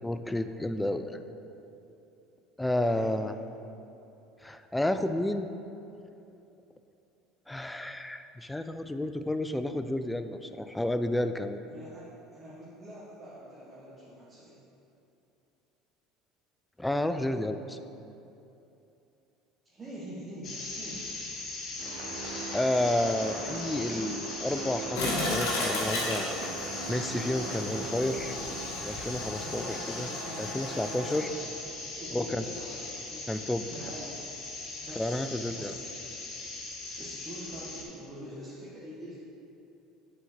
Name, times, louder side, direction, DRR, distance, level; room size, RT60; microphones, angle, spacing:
voice 1, 0.0-1.2 2.6-3.3 4.4-5.5 7.5-11.6 16.8-17.8 22.5-26.4 26.9-28.4 28.8-29.6 30.0-30.1 30.4-31.3 32.1-32.4 33.3-33.7 35.0-35.7, left 1 dB, 10° left, 9 dB, 0.4 m, -31 dB
voice 2, 11.7-14.6 19.7-21.0 29.3-31.5 31.8-33.4 33.7-34.2 34.6-35.9 37.0-39.2, equal, 25° right, -8 dB, 1.5 m, -45 dB
sound 1, 20.4-37.8, left 3 dB, 50° left, 1.3 m, -39 dB
sound 2, 21.8-28.6, right 3 dB, 70° right, 1.2 m, -40 dB
Toilet flush, 24.9-31.2, left 1 dB, 75° left, 1.4 m, -35 dB
7.5 x 4.2 x 4.6 m, 2.9 s
hypercardioid pair, 80°, 0 cm